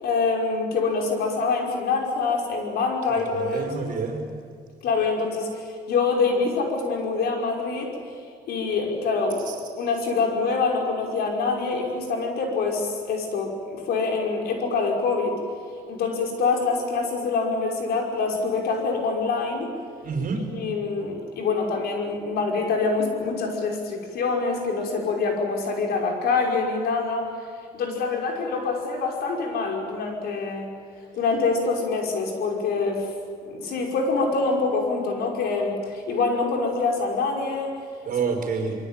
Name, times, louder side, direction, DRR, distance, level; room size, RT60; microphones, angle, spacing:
voice 1, 0.0-4.0 4.8-7.9 8.5-9.4 9.8-15.4 15.9-19.7 20.5-27.3 27.7-30.7 31.2-33.1 33.4-37.8, left 4 dB, 70° left, 2 dB, 5.6 m, -25 dB
voice 2, 3.1-4.2 9.5-9.6 20.0-20.4 38.1-38.8, right 5 dB, 55° right, 4 dB, 5.2 m, -28 dB
25.5 x 23.0 x 9.1 m, 2.1 s
cardioid pair, 110°, 17 cm